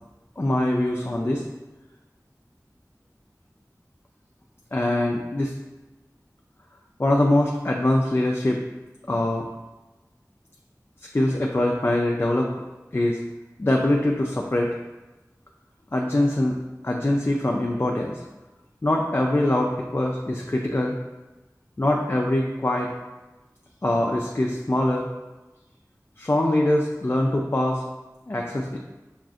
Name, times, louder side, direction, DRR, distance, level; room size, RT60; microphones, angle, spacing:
voice 1, 0.4-1.4 4.7-5.5 7.0-8.6 9.1-9.4 11.1-12.5 12.9-13.2 13.6-14.8 15.9-16.6 16.8-18.2 18.8-20.9 21.8-22.9 23.8-25.1 26.2-27.8 28.3-28.8, left 1 dB, 35° left, 0 dB, 0.3 m, -23 dB
5.9 x 2.4 x 2.4 m, 1.1 s
wide cardioid pair, 45°, 7 cm